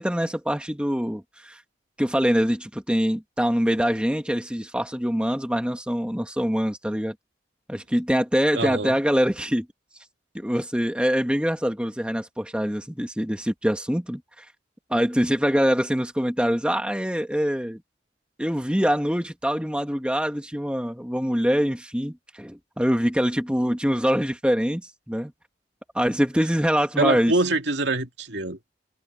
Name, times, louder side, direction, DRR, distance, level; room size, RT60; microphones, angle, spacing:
voice 1, 0.0-1.6 2.0-7.1 7.7-9.7 10.3-14.2 14.9-17.8 18.4-25.3 25.9-27.3, equal, 5° right, 1.8 m, -24 dB
voice 2, 8.5-9.0 27.0-28.7, right 2 dB, 80° right, 2.4 m, -24 dB
head